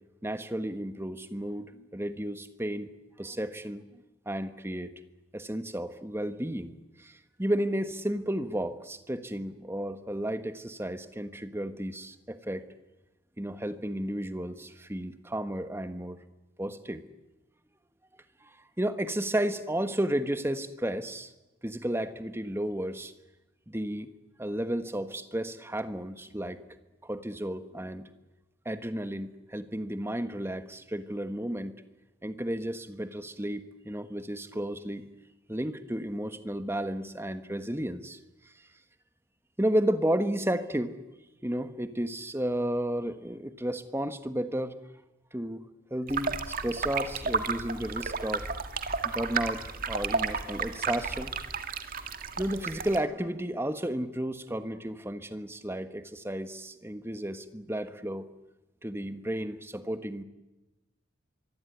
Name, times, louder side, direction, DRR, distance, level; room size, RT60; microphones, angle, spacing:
voice 1, 0.2-2.9 3.2-4.9 5.3-12.6 13.4-16.2 16.6-17.0 18.4-21.3 21.6-23.1 23.7-24.1 24.4-26.6 27.0-28.0 28.6-31.7 32.2-35.0 35.5-38.2 39.6-40.9 41.4-44.8 45.3-48.5 49.0-51.3 52.4-58.3 58.8-60.2, right 1 dB, 10° right, 10 dB, 1.4 m, -33 dB
sound 1, 46.1-53.0, right 5 dB, 45° right, 1.9 m, -33 dB
24.5 x 23.5 x 9.6 m, 1.0 s
head